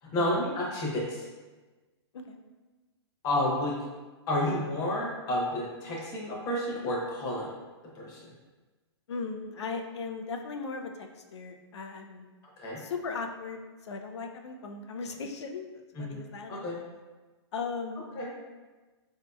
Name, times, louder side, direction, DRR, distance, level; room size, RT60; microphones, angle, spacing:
voice 1, 0.0-1.3 3.2-3.9 4.3-7.5 7.9-8.3 12.6-12.8 15.9-16.2 16.5-16.8 18.1-18.3, left 1 dB, 25° left, -4 dB, 0.9 m, -30 dB
voice 2, 9.1-12.3 12.8-16.7 17.5-18.1, left 4 dB, 85° left, 4 dB, 0.5 m, -38 dB
4.2 x 2.7 x 2.3 m, 1.3 s
hypercardioid pair, 145°, 14 cm